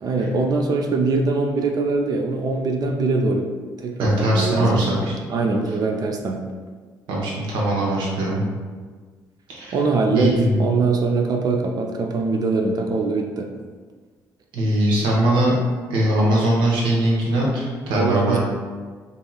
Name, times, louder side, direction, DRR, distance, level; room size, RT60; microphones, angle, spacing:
voice 1, 0.0-4.9 5.3-6.4 9.7-13.5 17.9-18.4, right 3 dB, 50° right, 3 dB, 0.3 m, -22 dB
voice 2, 4.0-5.1 7.1-8.4 9.5-9.8 10.1-10.6 14.5-15.5 15.9-18.4, right 1 dB, 75° right, -4 dB, 0.8 m, -21 dB
2.8 x 2.6 x 2.3 m, 1.5 s
supercardioid pair, 55°, 8 cm